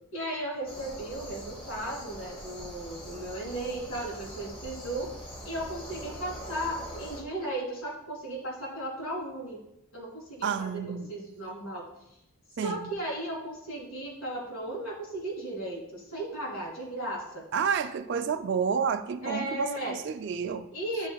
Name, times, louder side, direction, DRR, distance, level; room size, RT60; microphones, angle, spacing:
voice 1, 0.1-5.1 5.4-9.6 9.9-11.8 12.6-17.5 19.2-20.0 20.7-21.1, right 1 dB, 70° left, 2.7 m, -36 dB
sound 1, 0.7-7.2, equal, 25° left, 1.1 m, -43 dB
voice 2, 10.4-11.1 12.6-12.8 17.5-20.7, right 6 dB, 50° right, 0.3 m, -30 dB
11.5 x 6.5 x 2.3 m
head